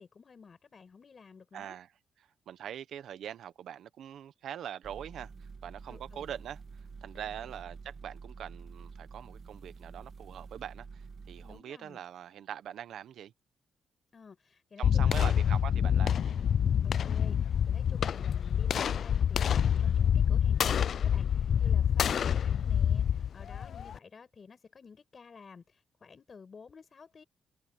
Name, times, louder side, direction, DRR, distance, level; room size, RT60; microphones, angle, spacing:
voice 1, 0.0-1.8 5.9-6.3 7.1-7.6 11.4-12.0 14.1-15.3 15.9-16.1 16.8-27.2, left 5 dB, 40° left, 5.8 m, -53 dB
voice 2, 1.5-1.9 2.5-13.3 14.8-16.6, right 10 dB, 75° right, 1.2 m, -43 dB
sound 1, 4.8-11.6, right 5 dB, 35° right, 1.6 m, -48 dB
sound 2, 14.8-24.0, left 8 dB, 55° left, 0.4 m, -27 dB
cardioid pair, 115°, 0 cm